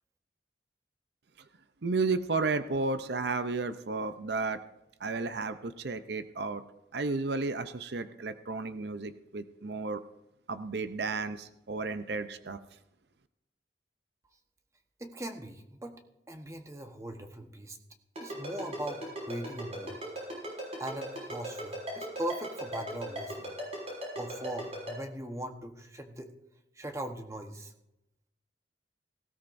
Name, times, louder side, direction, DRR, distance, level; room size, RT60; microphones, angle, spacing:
voice 1, 1.8-4.6 5.0-6.6 6.9-10.0 10.5-12.6, right 3 dB, 65° right, 11 dB, 0.6 m, -33 dB
voice 2, 15.0-15.9 16.3-17.8 18.2-20.0 20.8-23.5 24.2-26.3 26.8-27.7, right 1 dB, 15° right, 5 dB, 1.1 m, -40 dB
Ringtone, 18.2-24.9, right 1 dB, 35° right, 5.9 m, -37 dB
18.0 x 16.5 x 2.6 m, 0.88 s
head